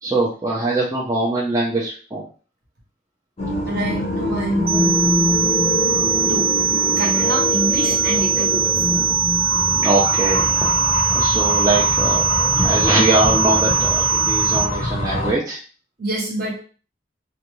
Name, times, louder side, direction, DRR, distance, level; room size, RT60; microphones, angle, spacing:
voice 1, 0.0-2.2 9.7-10.4 11.1-12.3 12.6-15.6, right 2 dB, 15° right, -5 dB, 0.4 m, -22 dB
sound 1, 3.4-15.3, left 1 dB, 30° left, 0.6 m, -24 dB
voice 2, 3.6-5.0 6.3-6.5 7.0-9.2 16.0-16.6, right 1 dB, 50° right, -1 dB, 0.8 m, -26 dB
sound 2, 4.7-14.7, right 7 dB, 85° right, 0.3 m, -20 dB
2.5 x 2.2 x 3.0 m, 0.38 s
head